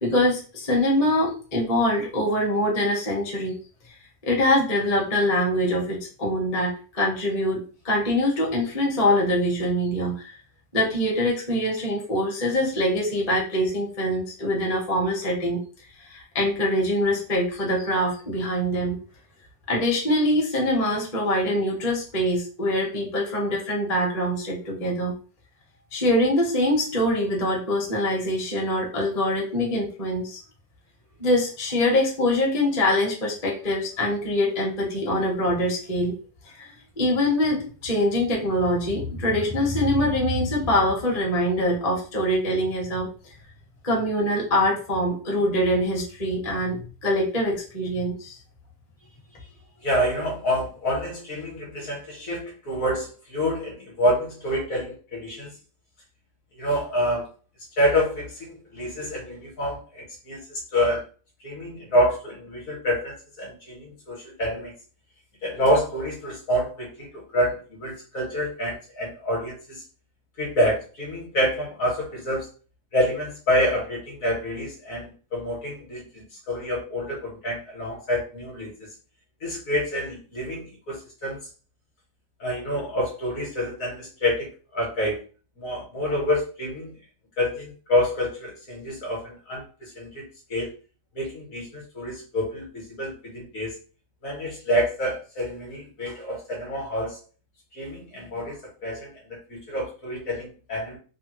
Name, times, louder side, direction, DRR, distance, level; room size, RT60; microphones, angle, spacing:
voice 1, 0.0-3.6 4.2-10.3 10.7-15.6 16.0-19.0 19.7-25.1 25.9-30.4 31.2-36.1 36.5-36.7 37.0-43.1 43.8-46.8 47.0-48.4, left 1 dB, 30° left, -2 dB, 0.8 m, -24 dB
voice 2, 49.8-55.5 56.5-57.3 57.8-61.0 61.4-64.7 65.4-69.8 70.4-72.5 72.9-78.7 79.4-81.4 82.4-85.2 85.6-86.9 87.4-90.7 91.1-93.8 94.2-97.2 97.7-101.0, equal, 55° left, -2 dB, 1.3 m, -27 dB
3.4 x 2.2 x 2.9 m, 0.36 s
omnidirectional pair, 1.9 m